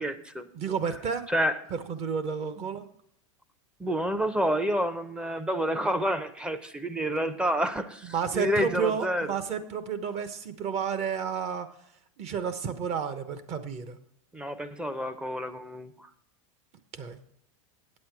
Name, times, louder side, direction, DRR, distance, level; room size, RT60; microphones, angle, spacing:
voice 1, 0.0-0.5 1.3-1.6 3.8-9.3 14.3-16.1, equal, 5° right, 10 dB, 0.6 m, -29 dB
voice 2, 0.5-1.2 1.7-2.8 8.0-11.7 12.2-14.0 16.9-17.2, right 6 dB, 40° right, 10 dB, 1.0 m, -31 dB
8.6 x 8.4 x 4.7 m, 0.70 s
hypercardioid pair, 120°, 17 cm